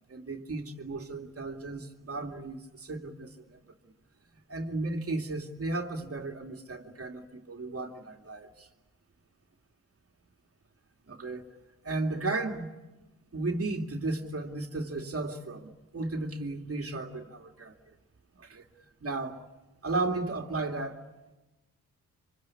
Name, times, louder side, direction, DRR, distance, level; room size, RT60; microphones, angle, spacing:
voice 1, 0.1-3.6 3.8-3.9 4.5-8.7 11.1-11.5 11.8-12.7 13.3-17.7 18.4-18.6 19.0-19.4 19.8-21.0, right 2 dB, 45° right, 2.6 m, -34 dB
25.0 x 25.0 x 8.5 m
cardioid pair, 60°, 34 cm